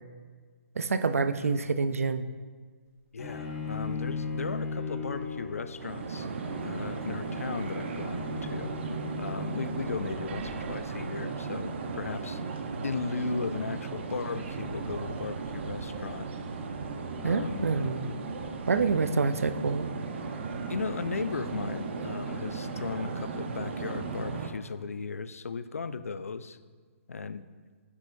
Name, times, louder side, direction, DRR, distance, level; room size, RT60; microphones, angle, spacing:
voice 1, 0.8-2.3 17.2-18.1 18.7-19.9, right 4 dB, 85° right, 12 dB, 0.6 m, -27 dB
voice 2, 3.1-6.3 6.6-8.7 9.2-12.4 12.8-16.3 17.2-18.0 20.7-26.6 27.1-27.4, left 4 dB, 90° left, 14 dB, 0.5 m, -36 dB
Bowed string instrument, 3.2-10.2, left 3 dB, 30° left, 2.0 m, -38 dB
sound 1, 5.8-24.5, right 4 dB, 55° right, 1.0 m, -36 dB
9.6 x 8.5 x 2.7 m, 1.5 s
hypercardioid pair, 145°, 7 cm